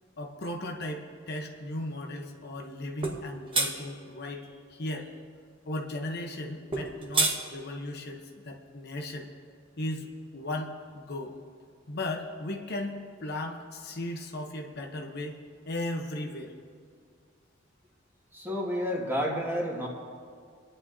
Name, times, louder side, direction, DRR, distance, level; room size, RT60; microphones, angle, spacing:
voice 1, 0.2-4.4 4.7-5.1 5.7-9.3 9.8-11.4 11.9-15.4 15.7-16.5, left 1 dB, 55° left, 2 dB, 1.0 m, -36 dB
sound 1, 3.0-3.2 3.5-3.7 6.7-7.4, right 3 dB, 25° right, 1.4 m, -26 dB
voice 2, 18.3-19.9, equal, 10° right, -3 dB, 2.0 m, -30 dB
27.5 x 10.5 x 2.8 m, 2.1 s
head